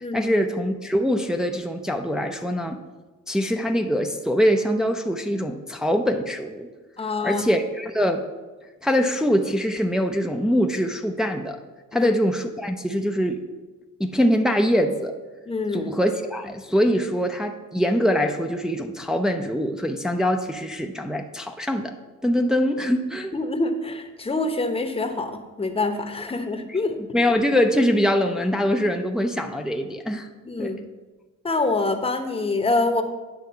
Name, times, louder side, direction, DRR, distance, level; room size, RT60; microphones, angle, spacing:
voice 1, 0.1-2.8 3.3-6.7 7.2-8.3 8.8-11.6 11.9-13.5 14.0-15.1 15.7-21.9 22.2-23.3 26.7-26.8 27.1-30.3 30.6-30.8, equal, ahead, 4 dB, 0.5 m, -23 dB
voice 2, 7.0-7.4 11.9-12.1 15.5-15.9 23.3-26.9 30.5-30.8 31.4-33.0, left 3 dB, 20° left, 6 dB, 0.9 m, -25 dB
9.3 x 3.5 x 6.6 m, 1.2 s
cardioid pair, 90°, 30 cm